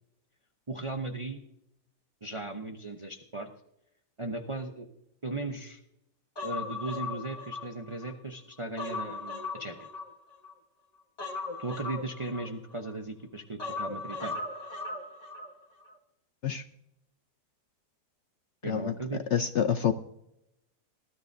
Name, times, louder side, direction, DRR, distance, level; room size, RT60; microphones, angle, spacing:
voice 1, 0.7-1.4 2.2-3.5 4.2-4.9 5.2-5.8 6.4-9.9 11.6-14.4 18.6-19.2, right 2 dB, 30° right, 4 dB, 0.6 m, -37 dB
Human voice, 6.4-8.1 8.5-10.5 11.2-12.9 13.6-15.5 15.8-15.9, left 3 dB, 25° left, 1.3 m, -38 dB
voice 2, 19.3-19.9, left 8 dB, 65° left, 10 dB, 0.7 m, -27 dB
20.5 x 12.5 x 2.6 m, 0.81 s
omnidirectional pair, 1.7 m